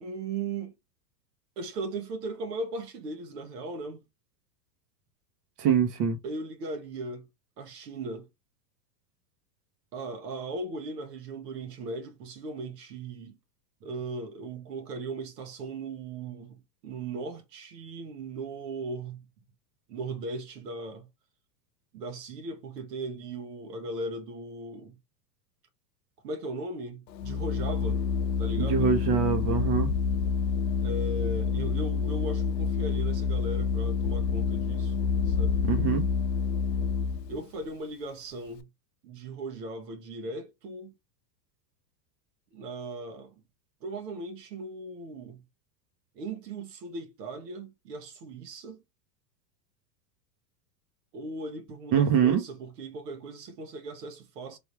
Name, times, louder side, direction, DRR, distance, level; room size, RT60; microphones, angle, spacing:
voice 1, 0.0-0.8 1.6-4.0 6.2-7.3 7.6-8.3 9.9-13.4 13.8-19.2 19.9-21.1 21.9-25.0 26.2-28.0 28.4-28.9 30.8-34.9 35.3-35.6 37.3-38.7 39.0-40.9 42.5-43.3 43.8-45.4 46.1-48.8 51.1-54.6, right 2 dB, 75° right, 1.3 m, -38 dB
voice 2, 5.6-6.2 28.6-29.9 35.7-36.0 51.9-52.4, right 7 dB, 50° right, 1.1 m, -24 dB
Organ, 27.1-37.4, left 5 dB, 80° left, 0.7 m, -28 dB
3.6 x 2.7 x 4.7 m
hypercardioid pair, 105°, 49 cm